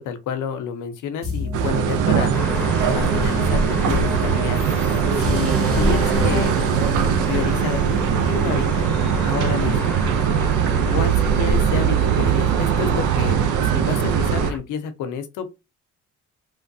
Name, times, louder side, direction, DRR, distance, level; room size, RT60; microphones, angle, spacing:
voice 1, 0.0-2.3 2.9-4.6 5.2-6.5 7.2-7.8 8.3-8.9 9.2-10.0 10.9-15.5, left 7 dB, 85° left, 0.6 m, -29 dB
sound 1, 1.2-9.1, right 1 dB, 50° right, 1.2 m, -28 dB
sound 2, 1.5-14.5, right 7 dB, 85° right, 0.5 m, -21 dB
sound 3, 2.3-14.6, left 1 dB, 5° left, 0.7 m, -33 dB
3.0 x 2.2 x 2.6 m
cardioid pair, 90°, 30 cm